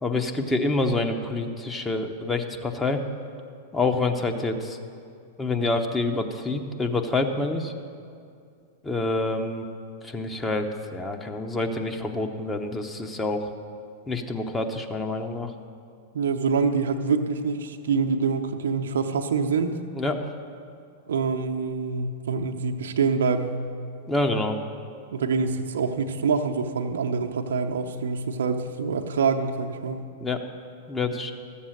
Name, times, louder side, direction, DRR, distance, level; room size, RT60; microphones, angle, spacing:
voice 1, 0.0-3.0 3.7-4.8 5.4-7.7 8.8-9.7 10.0-13.5 14.1-15.5 20.0-20.3 24.1-24.6 30.2-30.4 30.9-31.3, left 2 dB, 15° left, 4 dB, 1.0 m, -27 dB
voice 2, 16.1-19.8 21.1-23.6 25.1-30.1, right 5 dB, 70° right, 5 dB, 0.7 m, -25 dB
13.5 x 7.3 x 6.6 m, 2.4 s
figure-of-eight pair, 100°, 0 cm